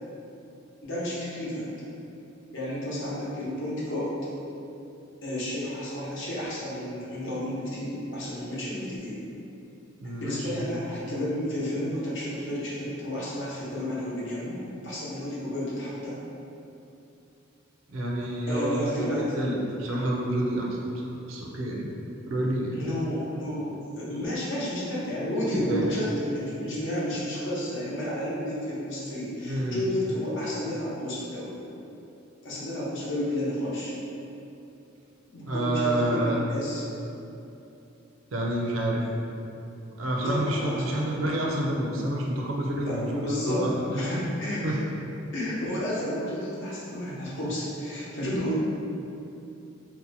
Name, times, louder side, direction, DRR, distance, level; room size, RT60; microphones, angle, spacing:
voice 1, 0.8-1.7 2.5-4.1 5.2-9.2 10.2-14.6 14.8-16.2 18.5-19.5 22.7-31.6 32.4-33.9 35.3-36.8 40.2-41.3 42.7-44.8 45.3-48.6, left 1 dB, 65° left, -7 dB, 0.8 m, -31 dB
voice 2, 10.0-10.6 17.9-20.8 21.1-21.9 22.3-22.8 25.5-26.0 29.4-29.8 35.5-36.4 38.3-39.0 40.0-43.9 44.6-44.8, right 1 dB, 75° right, -1 dB, 0.5 m, -28 dB
2.7 x 2.1 x 4.0 m, 2.8 s
head